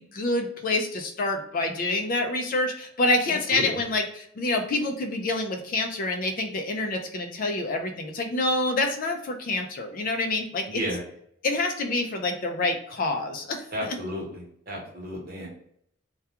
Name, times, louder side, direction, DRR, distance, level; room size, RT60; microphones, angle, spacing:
voice 1, 0.0-10.8 11.4-13.6, left 2 dB, 45° left, 5 dB, 0.4 m, -27 dB
voice 2, 3.3-3.8 10.7-11.0 13.7-15.5, equal, 50° right, -3 dB, 0.9 m, -33 dB
2.3 x 2.2 x 2.8 m, 0.68 s
head